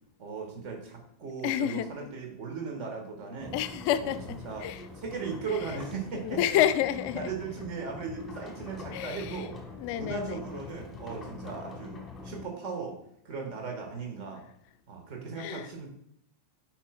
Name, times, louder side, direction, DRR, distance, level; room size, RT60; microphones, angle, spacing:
voice 1, 0.2-3.6 4.0-4.1 4.4-4.7 5.0-6.4 7.2-9.6 9.9-13.0 13.3-14.4 14.9-15.9, right 5 dB, 40° right, 1.7 m, -37 dB
voice 2, 1.4-2.1 3.5-4.9 5.5-5.8 6.2-7.3 8.9-9.5 9.7-10.4 15.4-15.9, left 11 dB, 45° left, 0.4 m, -30 dB
sound 1, 3.4-12.5, left 3 dB, 15° left, 1.4 m, -44 dB
9.1 x 4.5 x 2.5 m
figure-of-eight pair, 90°, 0 cm